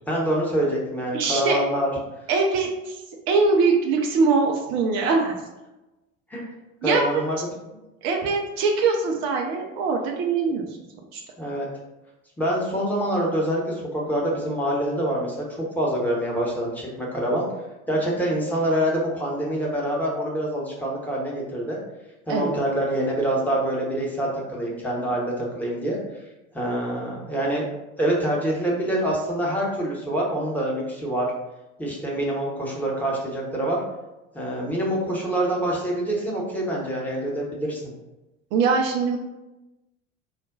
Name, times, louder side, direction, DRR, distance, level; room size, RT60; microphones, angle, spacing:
voice 1, 0.1-1.9 6.3-6.4 6.8-7.4 11.4-11.7 12.4-17.4 17.9-21.8 22.3-26.0 26.5-27.6 28.0-31.3 31.8-33.8 34.3-37.8, right 1 dB, 5° left, -3 dB, 1.0 m, -25 dB
voice 2, 1.1-1.6 2.3-5.4 6.8-7.2 8.0-10.6 11.1-11.2 22.3-22.6 38.5-39.2, right 4 dB, 35° right, 1 dB, 0.5 m, -22 dB
4.0 x 2.1 x 3.8 m, 1.0 s
figure-of-eight pair, 70°, 39 cm